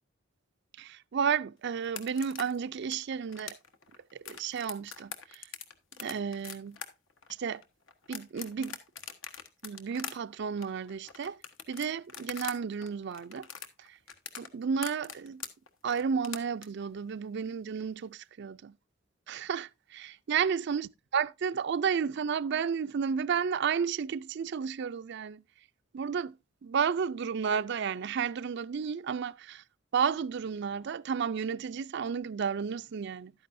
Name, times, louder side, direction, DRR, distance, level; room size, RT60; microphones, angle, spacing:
voice 1, 0.8-3.6 4.1-5.4 6.0-6.8 7.4-7.6 8.1-8.8 9.6-11.4 11.7-13.5 13.9-14.0 14.4-15.4 15.8-18.7 19.3-25.4 25.9-26.3 26.6-29.6 29.9-33.3, right 6 dB, 60° right, 0.4 m, -32 dB
sound 1, 1.8-12.6 12.8-16.7, left 7 dB, 75° left, 1.3 m, -43 dB
12.0 x 9.4 x 2.6 m
head